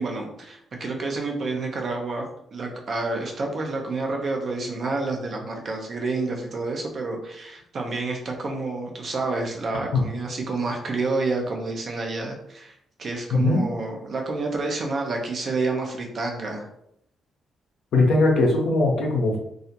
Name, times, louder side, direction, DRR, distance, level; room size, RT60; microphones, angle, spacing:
voice 1, 0.0-2.2 2.5-16.7, right 3 dB, 55° right, 2 dB, 0.6 m, -29 dB
voice 2, 13.3-13.6 17.9-19.4, left 2 dB, 70° left, 0 dB, 0.5 m, -20 dB
2.4 x 2.1 x 2.8 m, 0.75 s
hypercardioid pair, 45°, 0 cm